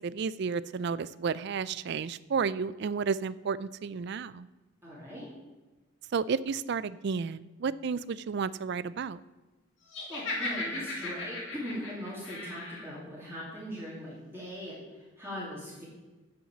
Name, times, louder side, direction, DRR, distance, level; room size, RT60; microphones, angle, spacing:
voice 1, 0.0-4.5 6.1-9.2, right 5 dB, 50° right, 18 dB, 0.3 m, -32 dB
voice 2, 4.8-5.3 10.1-15.8, equal, 10° right, -7 dB, 2.7 m, -40 dB
Laughter, 9.9-12.9, left 2 dB, 60° left, 2.4 m, -36 dB
9.6 x 6.1 x 7.2 m, 1.2 s
head